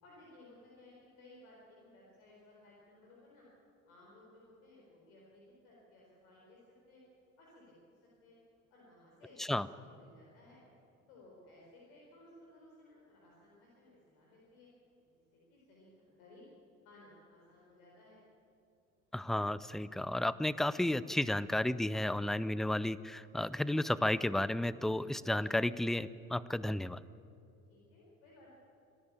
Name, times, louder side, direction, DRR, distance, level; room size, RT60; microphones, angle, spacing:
voice 1, 0.0-3.5 3.8-6.6 6.9-7.0 7.4-7.7 8.2-8.4 8.7-10.6 11.1-14.7 15.0-16.4 16.8-18.2 27.7-28.6, left 1 dB, 65° left, -4 dB, 4.6 m, -59 dB
voice 2, 19.1-27.0, left 1 dB, ahead, 18 dB, 0.4 m, -33 dB
25.5 x 13.5 x 8.8 m, 2.7 s
figure-of-eight pair, 55°, 43 cm